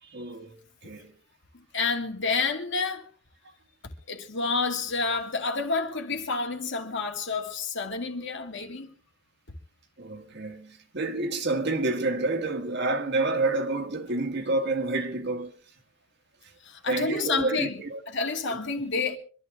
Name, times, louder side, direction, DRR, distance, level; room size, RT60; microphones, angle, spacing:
voice 1, 0.0-1.1 3.4-3.5 10.0-15.5 16.9-18.0 18.5-18.6 19.0-19.1, right 2 dB, 60° right, 1.9 m, -29 dB
voice 2, 1.5-3.1 4.1-8.9 16.6-19.2, left 4 dB, 65° left, 2.5 m, -29 dB
25.0 x 12.0 x 3.7 m
head